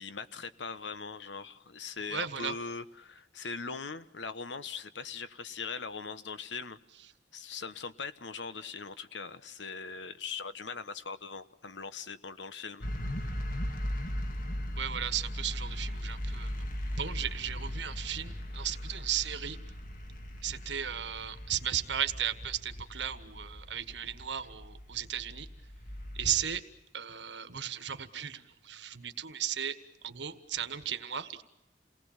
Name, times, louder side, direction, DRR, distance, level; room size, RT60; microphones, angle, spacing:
voice 1, 0.0-6.8 7.3-12.9, left 5 dB, 80° left, 13 dB, 1.2 m, -40 dB
voice 2, 2.1-2.5 14.8-16.6 17.0-19.6 20.4-25.5 26.2-26.6 26.9-29.7 30.0-31.4, right 9 dB, 75° right, 11 dB, 1.5 m, -35 dB
sound 1, 12.8-26.6, equal, 50° left, 2.1 m, -38 dB
29.0 x 19.0 x 7.3 m, 0.97 s
head